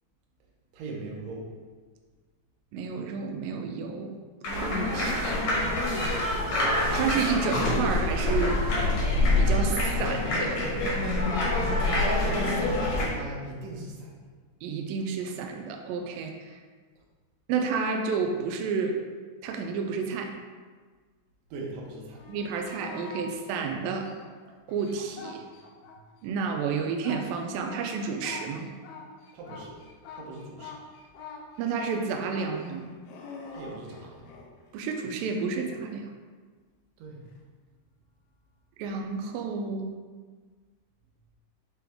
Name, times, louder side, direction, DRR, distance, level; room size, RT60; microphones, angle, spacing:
voice 1, 0.7-1.5 12.2-14.1 21.5-22.2 29.3-29.8 30.1-30.7 33.5-34.3 37.0-37.2, right 2 dB, 70° right, -2 dB, 2.3 m, -40 dB
voice 2, 2.7-4.1 4.6-5.4 6.9-8.7 9.4-10.6 14.6-16.5 17.5-19.0 19.4-20.3 22.3-24.1 24.7-25.4 26.2-28.7 31.6-32.9 34.7-36.1 38.8-39.9, right 5 dB, 90° right, 3 dB, 2.0 m, -30 dB
sound 1, 4.4-13.1, left 2 dB, 55° left, 2.2 m, -26 dB
sound 2, 22.1-23.3 23.9-26.0 26.3-34.5 37.3-37.4, left 4 dB, 80° left, 2.6 m, -44 dB
7.5 x 3.9 x 3.5 m, 1.5 s
omnidirectional pair, 4.7 m